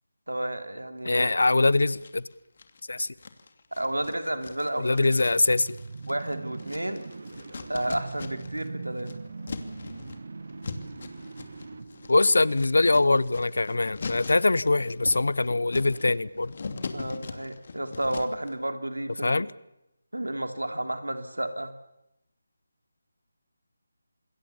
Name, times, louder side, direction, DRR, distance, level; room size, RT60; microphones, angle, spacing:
voice 1, 0.3-1.3 3.7-5.1 6.0-7.0 7.7-9.1 16.9-19.5 20.1-21.7, right 1 dB, 85° right, 7 dB, 3.2 m, -31 dB
voice 2, 1.0-2.2 2.9-3.1 4.8-5.8 12.1-16.5 19.2-19.5, left 2 dB, 65° left, 21 dB, 1.0 m, -23 dB
sound 1, 2.0-2.8 3.2-8.7 8.9-18.5, left 4 dB, 45° left, 2.7 m, -41 dB
sound 2, 4.7-12.8, right 4 dB, 55° right, 1.4 m, -41 dB
27.0 x 21.5 x 7.2 m, 0.87 s
figure-of-eight pair, 160°, 0 cm